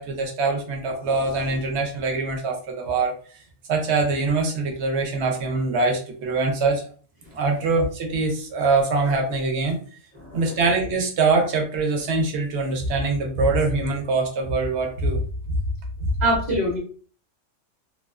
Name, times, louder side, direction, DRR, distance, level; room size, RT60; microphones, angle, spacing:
voice 1, 0.0-3.1 3.7-6.9 7.3-9.8 10.3-15.2 15.5-15.6 16.0-16.1, right 3 dB, 65° right, 3 dB, 0.9 m, -23 dB
voice 2, 10.1-10.6 16.2-16.8, right 1 dB, 40° right, -3 dB, 0.8 m, -25 dB
2.3 x 2.2 x 2.3 m, 0.44 s
omnidirectional pair, 1.3 m